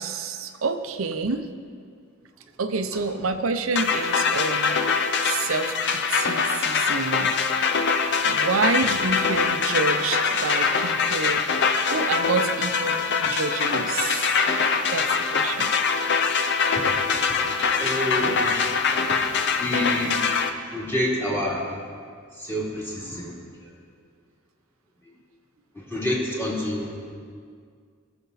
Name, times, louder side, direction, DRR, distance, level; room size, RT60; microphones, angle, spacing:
voice 1, 0.0-1.5 2.6-7.4 8.2-11.5 11.9-14.3 14.9-15.7, right 4 dB, 85° right, 7 dB, 0.7 m, -28 dB
sound 1, 3.8-20.5, left 5 dB, 60° left, 0.7 m, -23 dB
voice 2, 16.7-18.6 19.1-19.3 19.6-20.2 20.7-21.7 22.4-23.4 25.7-27.2, left 1 dB, 10° left, -5 dB, 2.5 m, -28 dB
20.0 x 6.8 x 4.1 m, 2.1 s
head